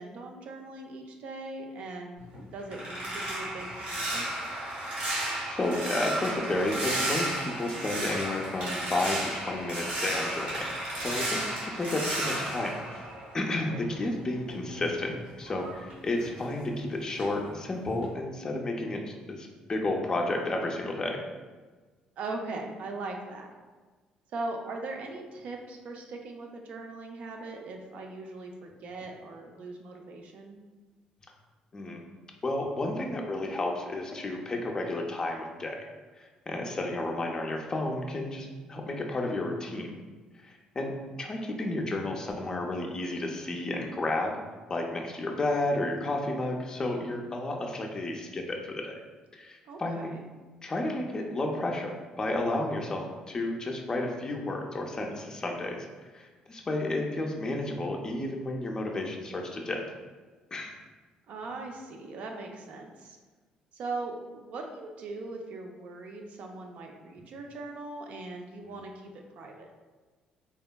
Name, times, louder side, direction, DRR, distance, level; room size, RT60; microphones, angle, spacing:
voice 1, 0.0-2.2 2.5-4.3 13.7-13.8 22.2-23.5 24.3-30.6 49.7-50.2 61.3-63.2 63.7-69.7, right 3 dB, 65° right, 2 dB, 0.4 m, -40 dB
sound 1, 2.2-13.8 14.2-16.8 17.2-17.5 17.9-18.1, right 1 dB, 80° right, 1.3 m, -34 dB
voice 2, 5.5-10.7 11.0-13.1 13.3-19.0 19.3-21.2 31.7-32.0 32.4-35.8 36.2-39.9 40.4-44.4 44.7-49.0 49.3-50.1 50.6-55.9 56.1-59.8 60.5-60.7 68.6-68.8, left 2 dB, 30° left, 1 dB, 0.4 m, -32 dB
3.4 x 2.1 x 2.2 m, 1.4 s
cardioid pair, 95°, 2 cm